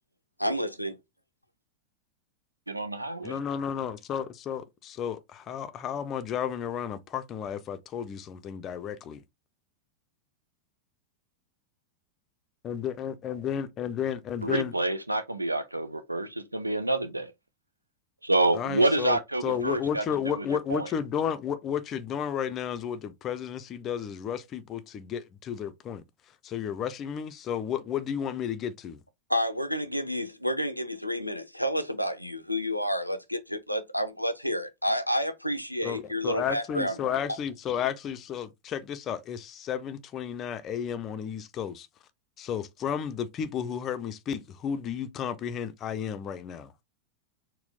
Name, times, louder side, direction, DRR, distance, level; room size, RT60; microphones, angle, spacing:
voice 1, 0.4-1.0 29.3-37.0, equal, 90° left, 0.5 m, -30 dB
voice 2, 2.7-3.4 14.4-17.3 18.2-20.4 20.7-20.9, right 2 dB, 85° right, 0.5 m, -28 dB
voice 3, 3.2-9.2 12.6-14.7 18.5-26.0 26.4-29.0 35.8-41.9 42.4-46.7, left 8 dB, 30° left, 0.5 m, -32 dB
4.3 x 2.1 x 3.6 m
figure-of-eight pair, 90°, 0 cm